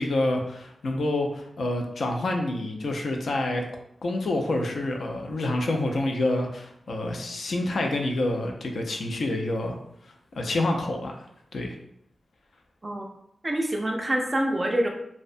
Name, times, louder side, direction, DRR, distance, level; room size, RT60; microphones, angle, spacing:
voice 1, 0.0-3.6 4.0-9.8 10.0-11.2 11.5-11.8, left 2 dB, 65° left, 2 dB, 0.3 m, -27 dB
voice 2, 13.4-14.9, right 1 dB, 20° right, 2 dB, 0.3 m, -26 dB
2.6 x 2.1 x 2.4 m, 0.74 s
wide cardioid pair, 155°, 0 cm